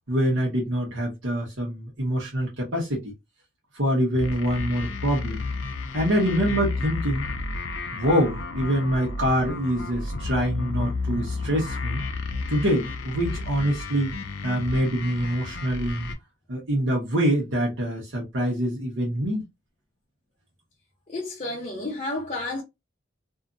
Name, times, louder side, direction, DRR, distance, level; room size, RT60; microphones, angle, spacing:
voice 1, 0.1-3.1 3.7-5.4 5.9-7.3 7.9-12.0 12.5-14.1 14.4-16.1 16.5-19.5, equal, 80° right, 1.0 m, -25 dB
sound 1, 4.1-16.1, left 3 dB, 85° left, 0.6 m, -32 dB
voice 2, 21.1-22.6, left 2 dB, 35° left, 0.7 m, -31 dB
2.8 x 2.4 x 2.4 m
head